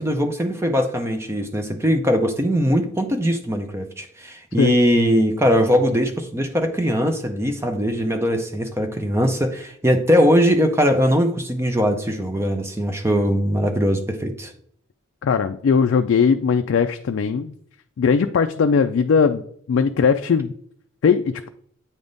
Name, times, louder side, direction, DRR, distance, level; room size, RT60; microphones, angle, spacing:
voice 1, 0.0-14.5, equal, 10° right, 5 dB, 0.5 m, -20 dB
voice 2, 15.2-17.5 18.0-19.4 19.7-20.5 21.0-21.5, left 6 dB, 60° left, 7 dB, 0.3 m, -19 dB
8.7 x 3.5 x 3.9 m, 0.64 s
head